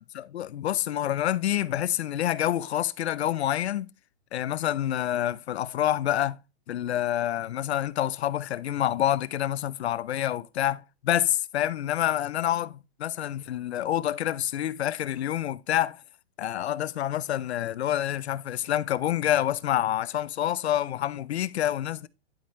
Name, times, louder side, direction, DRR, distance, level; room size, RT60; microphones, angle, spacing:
voice 1, 0.1-3.9 4.3-6.4 6.7-16.0 16.4-22.1, left 12 dB, 80° left, 0.6 m, -27 dB
11.5 x 4.4 x 3.1 m
hypercardioid pair, 170°, 32 cm